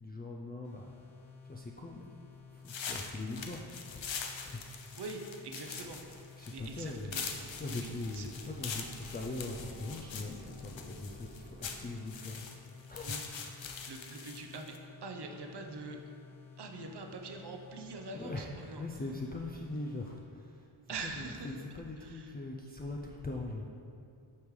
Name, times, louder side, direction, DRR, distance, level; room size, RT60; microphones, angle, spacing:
voice 1, 0.0-5.1 5.5-13.8 18.1-23.7, left 2 dB, 20° left, -1 dB, 0.3 m, -42 dB
sound 1, 0.6-20.3, left 6 dB, 35° left, 1.2 m, -54 dB
walking the leaves, 2.6-14.8, left 6 dB, 65° left, 0.7 m, -43 dB
voice 2, 4.9-6.0 6.5-7.2 7.7-8.3 13.0-13.2 13.9-16.0 16.6-18.8 20.9-21.6 22.0-22.3, right 3 dB, 55° right, 3 dB, 0.7 m, -44 dB
sound 2, 6.8-11.9, right 1 dB, 70° right, 1.4 m, -52 dB
8.3 x 5.2 x 3.2 m, 2.6 s
wide cardioid pair, 105°, 49 cm